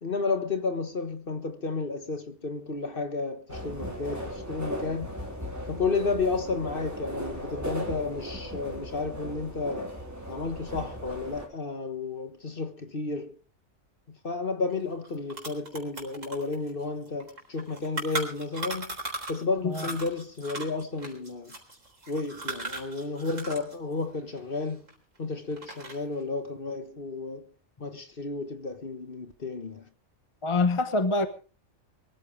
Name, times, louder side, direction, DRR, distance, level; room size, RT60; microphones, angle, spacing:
voice 1, 0.0-5.2 5.7-9.9 10.3-13.3 14.2-18.9 19.3-21.6 22.1-24.8 25.2-27.5 27.8-29.9, left 3 dB, 45° left, 1.5 m, -32 dB
sound 1, 3.5-11.5, equal, 10° right, 4.1 m, -37 dB
sound 2, 14.7-14.8 15.0-19.4 19.7-23.7 24.0-25.2 25.5-26.1, right 2 dB, 70° right, 4.3 m, -37 dB
voice 2, 30.4-31.3, left 3 dB, 25° left, 1.1 m, -25 dB
23.5 x 14.0 x 3.3 m
omnidirectional pair, 1.4 m